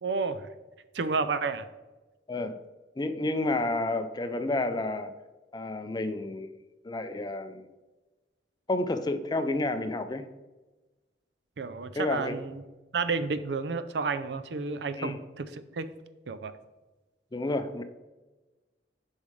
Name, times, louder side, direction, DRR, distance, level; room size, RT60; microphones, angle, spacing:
voice 1, 0.0-0.5 0.9-1.7 11.6-12.6 12.9-15.9 16.3-16.5, right 4 dB, 70° right, 12 dB, 0.5 m, -31 dB
voice 2, 3.0-5.1 5.5-6.5 6.8-7.7 8.7-10.2 11.9-12.3 15.0-15.2 17.3-17.8, left 2 dB, 25° left, 9 dB, 0.5 m, -30 dB
8.4 x 5.5 x 3.2 m, 1.2 s
head